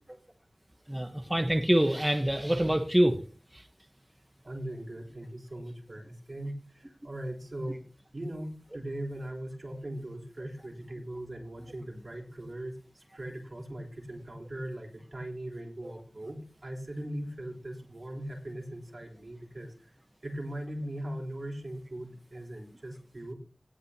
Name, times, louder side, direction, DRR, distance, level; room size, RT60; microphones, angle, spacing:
voice 1, 0.9-3.2 3.5-3.6 15.8-15.9, right 1 dB, 20° right, 5 dB, 1.1 m, -25 dB
voice 2, 4.4-7.8 8.1-19.9 20.2-23.3, right 1 dB, 60° right, 0 dB, 3.8 m, -40 dB
17.5 x 8.9 x 2.9 m, 0.38 s
wide cardioid pair, 55°, 0 cm